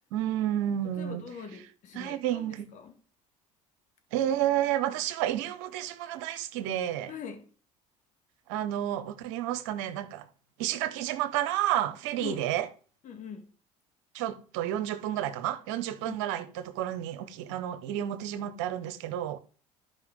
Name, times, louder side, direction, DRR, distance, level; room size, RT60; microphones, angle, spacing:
voice 1, 0.1-1.2 1.9-2.7 4.1-7.1 8.5-10.3 10.6-12.7 14.1-19.4, right 12 dB, 75° right, 1.0 m, -31 dB
voice 2, 1.0-3.0 7.1-7.5 12.2-12.5 13.0-13.5 16.1-16.2, left 7 dB, 50° left, 2.0 m, -42 dB
12.0 x 5.4 x 3.7 m
hypercardioid pair, 75°, 16 cm